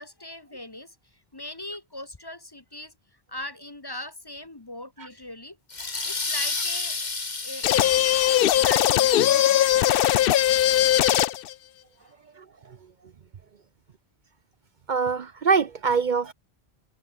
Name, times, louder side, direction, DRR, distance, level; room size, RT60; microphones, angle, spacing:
voice 1, 0.0-2.9 3.3-5.6 6.0-7.1 7.4-9.4 12.0-12.1, left 1 dB, 25° left, 1.1 m, -40 dB
sound 1, 5.7-9.1, left 3 dB, 45° left, 1.9 m, -32 dB
sound 2, 7.6-11.5, left 12 dB, 65° left, 0.7 m, -20 dB
voice 2, 12.4-12.8 14.9-16.3, right 5 dB, 55° right, 0.8 m, -25 dB
omnidirectional pair, 1.0 m